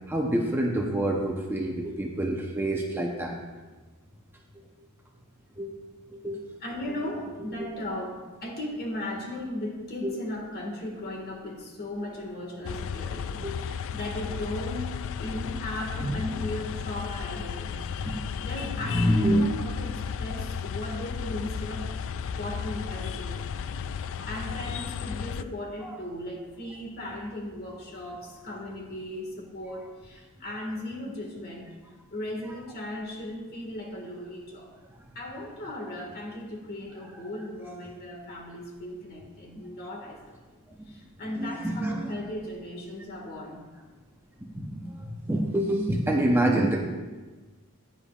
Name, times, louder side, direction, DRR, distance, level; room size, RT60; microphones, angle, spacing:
voice 1, 0.1-3.4 5.6-5.7 6.1-6.4 13.4-13.5 16.0-16.1 18.0-18.1 18.8-19.4 24.2-24.3 25.8-25.9 41.4-42.1 44.5-46.8, right 1 dB, 10° right, 0 dB, 0.8 m, -26 dB
voice 2, 6.6-17.8 18.4-22.0 22.3-23.5 23.9-31.7 32.1-34.8 35.1-43.6, left 1 dB, 45° left, 1 dB, 1.9 m, -37 dB
sound 1, 12.6-25.4, left 7 dB, 60° left, 0.3 m, -34 dB
15.5 x 9.9 x 2.5 m, 1.3 s
head